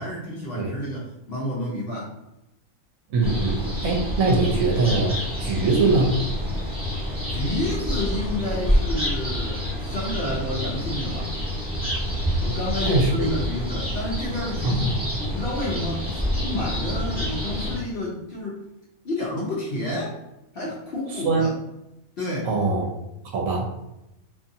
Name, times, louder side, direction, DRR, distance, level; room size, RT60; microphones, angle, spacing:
voice 1, 0.0-2.1 7.3-11.4 12.4-14.9 15.2-18.6 19.0-20.2 20.5-21.5 22.2-22.5, left 1 dB, 60° left, -5 dB, 0.6 m, -30 dB
voice 2, 3.1-6.3 12.8-13.1 14.6-15.0 21.1-21.5 22.4-22.9 23.3-23.7, right 3 dB, 75° right, -1 dB, 1.0 m, -22 dB
sound 1, 3.2-17.8, equal, 5° right, 0.6 m, -27 dB
2.6 x 2.6 x 2.5 m, 0.90 s
omnidirectional pair, 1.5 m